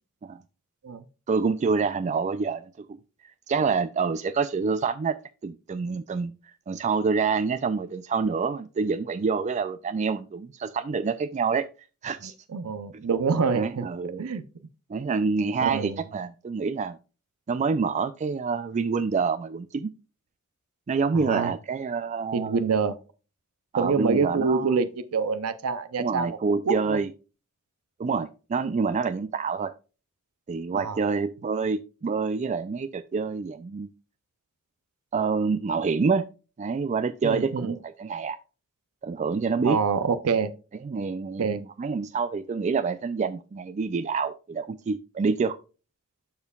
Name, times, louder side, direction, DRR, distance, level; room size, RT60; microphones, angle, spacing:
voice 1, 1.3-3.0 3.2-5.2 5.4-11.7 12.0-12.3 12.9-13.0 13.5-14.2 14.9-17.0 17.5-19.9 20.9-22.6 23.7-24.8 26.0-27.1 28.0-29.7 30.5-33.9 35.1-36.3 36.6-38.4 39.0-39.8 40.8-45.6, right 5 dB, 30° right, 12 dB, 0.3 m, -27 dB
voice 2, 12.5-13.9 14.2-14.4 15.6-16.0 21.1-21.5 22.3-23.0 23.8-26.4 26.7-27.0 30.7-31.0 37.2-37.7 39.6-40.5 41.4-41.6, right 5 dB, 85° right, 12 dB, 0.6 m, -26 dB
12.0 x 4.4 x 2.3 m, 0.33 s
head